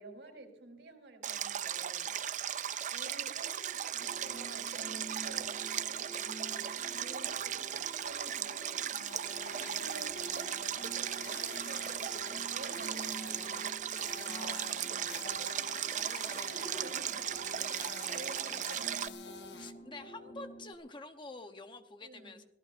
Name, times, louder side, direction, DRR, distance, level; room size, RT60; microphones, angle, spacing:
voice 1, 0.0-2.1 2.4-8.9 9.7-13.6 16.4-19.1 22.0-22.4, right 2 dB, 75° right, 4 dB, 3.8 m, -51 dB
Stream, 1.2-19.1, right 10 dB, 40° right, 0.4 m, -37 dB
sound 1, 3.9-20.7, right 1 dB, 40° left, 2.9 m, -49 dB
sound 2, 8.9-19.7, left 6 dB, 65° left, 1.2 m, -50 dB
voice 2, 14.3-16.9 19.5-22.4, left 3 dB, 25° left, 7 dB, 0.9 m, -50 dB
25.5 x 18.0 x 2.6 m, 0.91 s
head